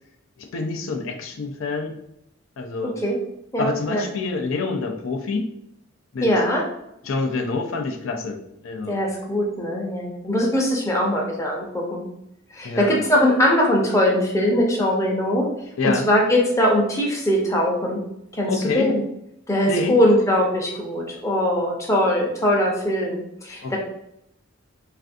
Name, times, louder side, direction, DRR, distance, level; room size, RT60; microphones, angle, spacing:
voice 1, 0.4-1.9 2.6-3.0 3.6-5.5 6.1-6.3 7.0-8.4 8.6-9.0 12.6-13.0 15.8-16.1 18.5-18.9 19.7-20.0 23.6-23.8, left 3 dB, 85° left, 5 dB, 0.4 m, -26 dB
voice 2, 3.5-4.0 6.2-6.6 8.9-12.0 12.5-15.5 15.8-18.0 18.4-19.0 19.5-23.8, left 1 dB, 15° left, -2 dB, 0.6 m, -21 dB
3.3 x 2.5 x 2.5 m, 0.79 s
head